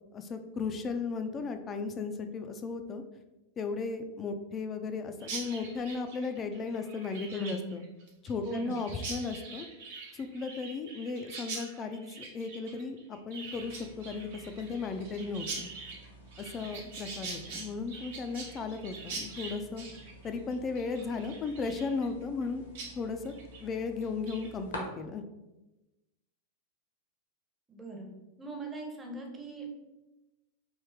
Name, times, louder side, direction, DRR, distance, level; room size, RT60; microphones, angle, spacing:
voice 1, 0.1-3.0 3.6-7.8 8.2-9.7 10.1-15.7 16.4-19.9 20.2-22.6 22.9-23.3 23.6-25.2, left 4 dB, 25° left, 7 dB, 0.3 m, -35 dB
Chirp tweet, 5.2-22.5 22.7-22.9 23.2-23.6 24.0-24.5, right 4 dB, 50° right, 0.7 m, -44 dB
voice 2, 7.3-7.7 8.4-8.8 27.7-28.1 28.4-29.7, right 2 dB, 15° right, 1 dB, 0.7 m, -40 dB
sound 1, 13.5-24.8, equal, 70° left, 0.8 m, -51 dB
3.2 x 2.7 x 3.5 m, 1.0 s
figure-of-eight pair, 90°, 0 cm